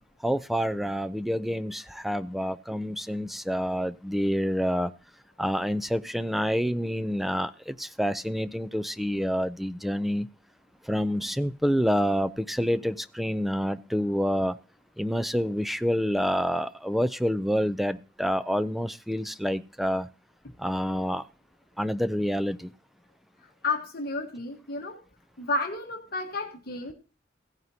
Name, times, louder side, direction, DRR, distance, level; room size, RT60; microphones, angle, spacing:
voice 1, 0.2-4.9 5.4-10.3 10.9-14.6 15.0-20.1 20.6-21.2 21.8-22.7, equal, ahead, 0.5 m, -27 dB
voice 2, 23.4-25.0 25.4-26.9, left 3 dB, 55° left, 1.4 m, -32 dB
16.0 x 9.2 x 2.8 m
head